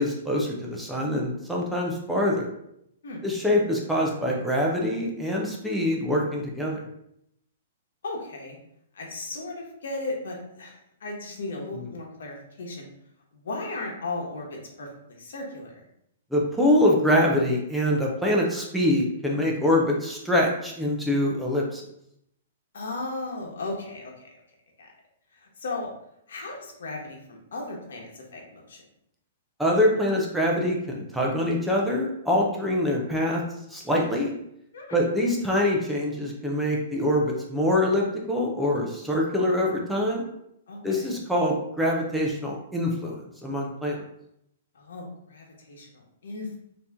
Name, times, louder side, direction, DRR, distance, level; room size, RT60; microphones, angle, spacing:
voice 1, 0.0-2.5 3.2-6.8 11.7-11.9 16.3-21.8 29.6-33.4 33.7-34.3 34.9-40.3 40.8-44.0, left 1 dB, ahead, -3 dB, 0.5 m, -24 dB
voice 2, 8.0-8.6 8.9-12.9 13.3-14.9 15.2-15.8 22.7-24.3 24.8-24.9 25.4-25.9 26.3-28.8 34.7-35.0 40.7-41.1 44.7-46.6, left 2 dB, 70° left, 0 dB, 1.2 m, -36 dB
4.0 x 2.8 x 3.5 m, 0.77 s
hypercardioid pair, 175°, 0 cm